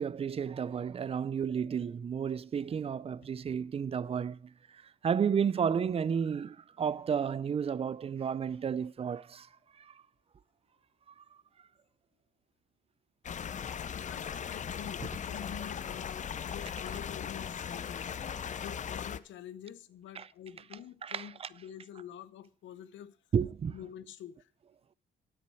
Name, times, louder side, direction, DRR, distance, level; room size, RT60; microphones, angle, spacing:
voice 1, 0.0-9.5 9.8-10.0 11.2-11.3 20.2-20.3 21.0-21.5 23.3-23.7, right 7 dB, 30° right, 0.4 m, -32 dB
sound 1, 13.2-19.2, left 8 dB, 40° left, 0.5 m, -38 dB
voice 2, 14.1-23.2 23.7-24.5, left 9 dB, 85° left, 0.7 m, -47 dB
9.7 x 8.4 x 4.6 m
cardioid pair, 95°, 19 cm